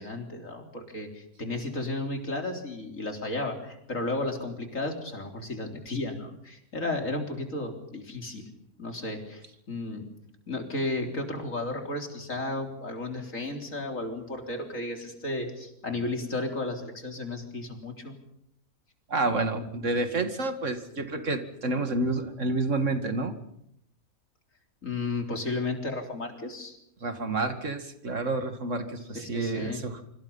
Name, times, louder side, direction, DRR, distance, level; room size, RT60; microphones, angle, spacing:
voice 1, 0.0-8.5 8.8-10.1 10.5-18.1 24.8-26.8 29.1-29.8, left 2 dB, 60° left, 3 dB, 4.1 m, -33 dB
voice 2, 19.1-23.3 27.0-30.0, right 2 dB, 55° right, 7 dB, 2.5 m, -29 dB
26.5 x 25.5 x 5.6 m, 0.75 s
omnidirectional pair, 1.5 m